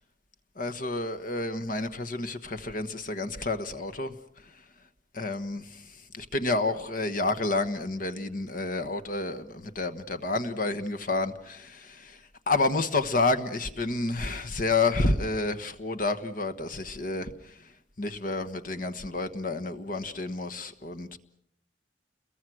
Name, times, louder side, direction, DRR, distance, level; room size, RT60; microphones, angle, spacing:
voice 1, 0.6-4.1 5.1-5.8 6.1-12.2 12.5-17.5 18.0-21.2, left 3 dB, 50° left, 9 dB, 1.3 m, -29 dB
29.5 x 22.5 x 6.2 m, 0.69 s
head